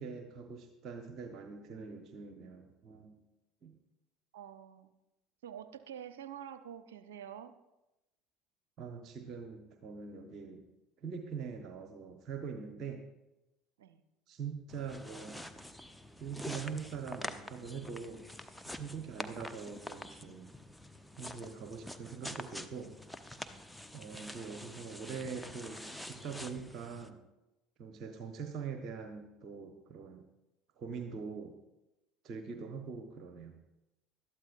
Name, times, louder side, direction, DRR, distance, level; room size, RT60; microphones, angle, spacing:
voice 1, 0.0-3.2 3.6-3.7 8.8-10.6 11.0-13.0 14.3-15.4 16.2-20.5 21.2-23.0 23.9-27.2 27.8-30.2 30.8-31.5 32.2-33.6, right 5 dB, 45° right, 5 dB, 1.1 m, -43 dB
voice 2, 4.3-4.9 5.4-7.5 13.8-14.0, right 9 dB, 70° right, 12 dB, 0.7 m, -47 dB
sound 1, 14.7-27.1, left 1 dB, ahead, 0.8 m, -46 dB
20.5 x 12.5 x 2.5 m, 0.97 s
figure-of-eight pair, 65°, 0 cm